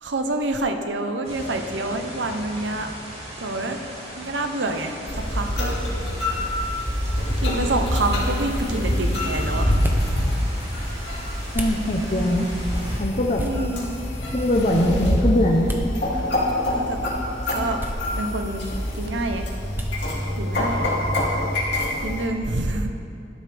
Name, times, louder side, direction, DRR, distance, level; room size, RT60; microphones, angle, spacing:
voice 1, 0.0-2.9 3.4-3.8 4.2-5.8 7.4-10.2 13.4-13.9 16.7-17.1 17.5-17.8 18.1-18.7 18.9-19.5 20.4-20.9 22.0-22.9, right 2 dB, 75° right, 6 dB, 0.8 m, -27 dB
sound 1, 1.2-13.0, equal, 35° right, 2.8 m, -39 dB
sound 2, 5.1-22.3, left 1 dB, 65° left, 2.7 m, -26 dB
sound 3, 9.4-20.5, equal, 10° right, 0.8 m, -35 dB
voice 2, 11.5-12.5 13.0-13.4 14.3-15.7, left 1 dB, 40° left, 0 dB, 0.8 m, -21 dB
13.0 x 12.0 x 3.4 m, 2.6 s
head